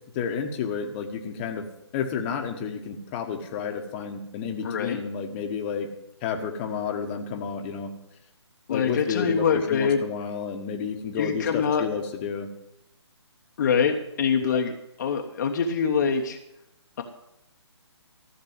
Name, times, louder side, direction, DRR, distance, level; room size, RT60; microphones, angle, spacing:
voice 1, 0.1-1.6 1.9-5.9 6.2-7.9 8.7-12.5, left 6 dB, 25° left, 4 dB, 1.4 m, -31 dB
voice 2, 4.6-5.0 8.7-10.0 11.2-11.9 13.6-16.4, left 6 dB, 40° left, 3 dB, 1.2 m, -24 dB
14.5 x 6.7 x 9.6 m, 0.83 s
figure-of-eight pair, 140°, 15 cm